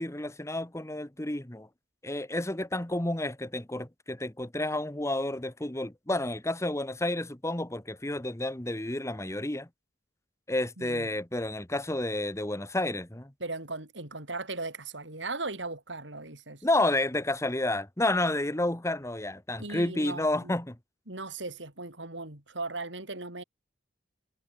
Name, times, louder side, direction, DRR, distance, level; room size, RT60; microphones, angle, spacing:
voice 1, 0.0-1.7 2.0-9.7 10.5-13.3 16.6-20.8, left 1 dB, 15° left, 1.4 m, -30 dB
voice 2, 10.8-11.1 13.4-16.6 19.6-20.5 21.1-23.4, right 3 dB, 85° right, 6.6 m, -38 dB
head